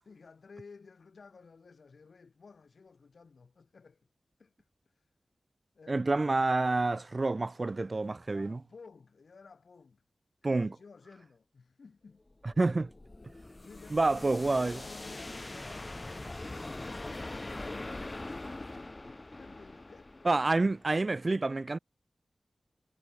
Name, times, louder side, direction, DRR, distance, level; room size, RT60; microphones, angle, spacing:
voice 1, 0.1-4.1 4.4-4.5 4.9-5.1 5.7-6.0 8.3-10.0 10.4-12.3 13.2-16.4 16.8-20.4, left 4 dB, 75° left, 2.6 m, -54 dB
voice 2, 5.9-8.6 10.4-10.7 12.4-12.9 13.9-14.8 20.2-21.8, right 3 dB, 40° right, 0.6 m, -28 dB
sound 1, 12.3-21.2, left 2 dB, 30° left, 2.0 m, -43 dB
wide cardioid pair, 95°, 0 cm